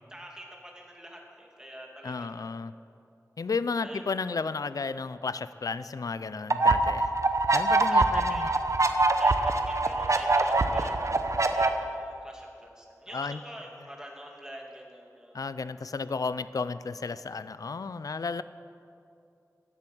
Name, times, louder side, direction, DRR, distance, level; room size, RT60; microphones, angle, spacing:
voice 1, 0.1-2.6 3.8-4.0 7.9-8.4 9.1-15.6, equal, 10° right, 0 dB, 2.5 m, -46 dB
voice 2, 2.0-2.7 3.4-7.1 7.5-8.5 13.1-13.4 15.3-18.4, left 4 dB, 80° left, 14 dB, 0.4 m, -33 dB
sound 1, 6.5-11.7, right 2 dB, 60° right, 0.8 m, -24 dB
15.5 x 10.5 x 6.1 m, 2.6 s
wide cardioid pair, 70°, 6 cm